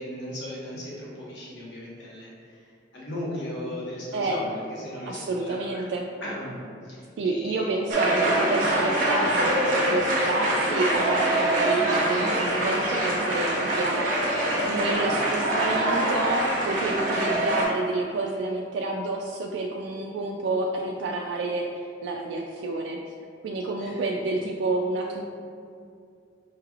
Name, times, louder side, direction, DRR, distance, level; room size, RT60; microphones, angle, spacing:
voice 1, 0.0-5.8 6.2-8.6 9.1-9.8 14.5-14.7 15.2-15.3 23.8-24.0 24.4-24.5, left 1 dB, 80° left, -6 dB, 1.1 m, -37 dB
voice 2, 5.1-6.1 7.2-9.4 9.7-23.0 23.4-25.2, right 2 dB, 85° right, 0 dB, 0.3 m, -29 dB
sound 1, 7.9-17.6, right 1 dB, 50° right, 0.8 m, -24 dB
4.7 x 3.2 x 2.3 m, 2.4 s
head